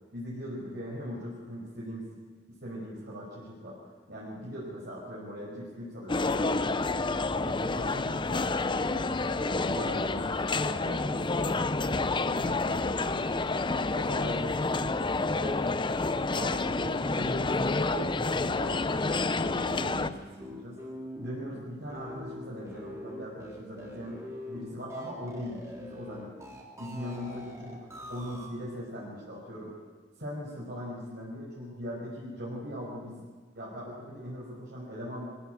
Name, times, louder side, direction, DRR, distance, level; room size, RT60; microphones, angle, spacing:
voice 1, 0.1-2.2 2.6-3.8 4.1-6.8 7.3-13.5 13.9-15.0 15.3-15.6 16.3-20.8 21.2-26.5 26.8-29.7 30.2-33.2 33.5-35.3, equal, 60° right, -7 dB, 5.7 m, -40 dB
sound 1, 6.1-20.1, left 3 dB, 25° left, 0.6 m, -29 dB
sound 2, 19.3-28.5, equal, 15° right, 3.7 m, -44 dB
23.0 x 16.5 x 8.2 m, 1.5 s
head